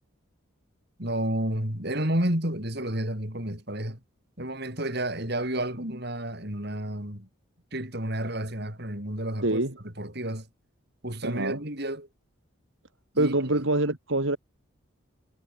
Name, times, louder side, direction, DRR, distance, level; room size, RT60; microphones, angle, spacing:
voice 1, 1.0-4.0 4.4-7.3 7.7-10.5 11.0-12.1 13.1-13.6, right 1 dB, 50° right, 6.2 m, -31 dB
voice 2, 9.4-9.7 11.2-11.6 13.2-14.4, right 2 dB, 70° right, 2.8 m, -25 dB
head